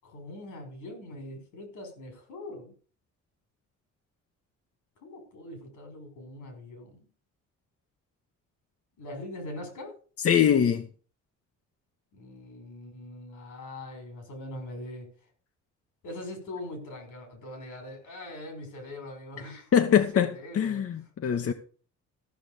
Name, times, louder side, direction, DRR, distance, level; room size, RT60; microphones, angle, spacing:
voice 1, 0.0-2.7 5.0-7.0 9.0-10.0 12.1-15.1 16.0-20.8, left 1 dB, 90° left, 5.7 m, -42 dB
voice 2, 10.2-10.9 19.7-21.5, left 8 dB, 50° left, 1.2 m, -23 dB
14.0 x 6.0 x 6.9 m
cardioid pair, 90°, 30 cm